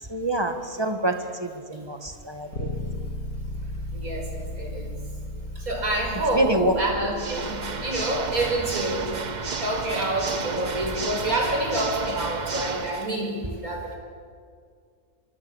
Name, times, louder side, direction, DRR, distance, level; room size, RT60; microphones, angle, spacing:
voice 1, 0.1-2.8 6.3-6.7, right 1 dB, 20° right, 5 dB, 1.8 m, -26 dB
Bass guitar, 2.5-12.4, left 1 dB, 90° left, 2.3 m, -37 dB
voice 2, 3.9-5.0 5.7-7.6 7.8-9.2 9.6-14.0, right 1 dB, 75° right, 1 dB, 5.7 m, -27 dB
Water / Mechanisms, 7.1-13.1, right 5 dB, 35° right, 0.9 m, -32 dB
25.0 x 23.5 x 7.3 m, 2.1 s
omnidirectional pair, 1.5 m